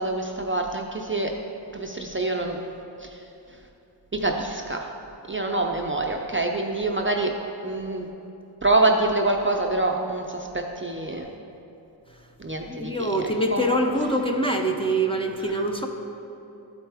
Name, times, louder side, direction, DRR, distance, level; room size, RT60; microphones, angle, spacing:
voice 1, 0.0-1.4 1.7-2.6 3.0-3.6 4.1-4.9 5.3-7.4 7.6-8.1 8.6-11.3 12.4-13.7 15.4-15.9, right 2 dB, 25° right, 1 dB, 0.5 m, -26 dB
voice 2, 12.6-15.9, right 1 dB, 10° left, 2 dB, 0.7 m, -24 dB
12.5 x 4.4 x 3.5 m, 2.8 s
wide cardioid pair, 45°, 45 cm